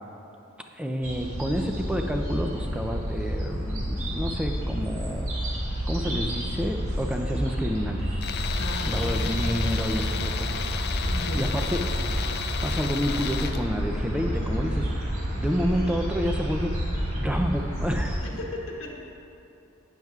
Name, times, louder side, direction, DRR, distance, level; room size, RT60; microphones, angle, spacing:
voice 1, 0.7-5.3 5.8-8.2 8.9-10.7 11.3-11.8 12.6-14.9 15.3-16.8 17.2-18.2, equal, 5° right, 4 dB, 0.4 m, -29 dB
sound 1, 1.0-18.2, equal, 85° right, 1.8 m, -30 dB
Tools, 8.2-13.6, left 7 dB, 50° left, 0.4 m, -33 dB
voice 2, 8.6-9.6 11.1-11.5 15.4-15.7 18.2-18.9, left 2 dB, 80° left, -2 dB, 1.1 m, -36 dB
12.0 x 9.1 x 2.4 m, 2.8 s
head